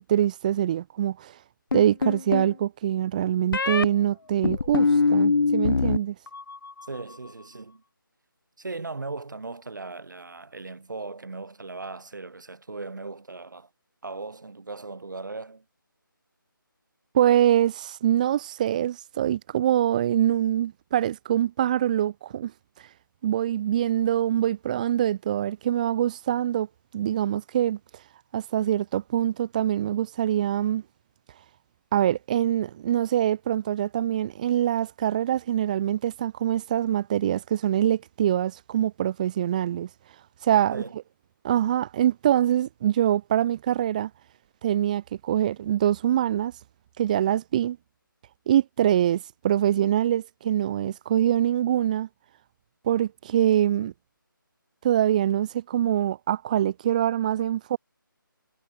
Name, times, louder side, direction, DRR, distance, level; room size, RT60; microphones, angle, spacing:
voice 1, 0.1-1.3 1.7-6.1 17.1-22.5 23.2-26.7 26.9-27.8 28.3-30.8 31.9-39.9 40.4-40.8 41.4-44.1 44.6-46.5 47.0-47.8 48.5-52.1 52.8-53.9 54.8-57.8, right 11 dB, 20° right, 1.0 m, -24 dB
sound 1, 1.7-2.5 3.5-3.9 4.4-6.0 6.3-6.8, left 4 dB, 75° left, 0.4 m, -23 dB
voice 2, 6.9-7.8 8.6-13.7 14.0-15.6 40.7-40.9, right 3 dB, 60° right, 4.7 m, -38 dB
figure-of-eight pair, 155°, 12 cm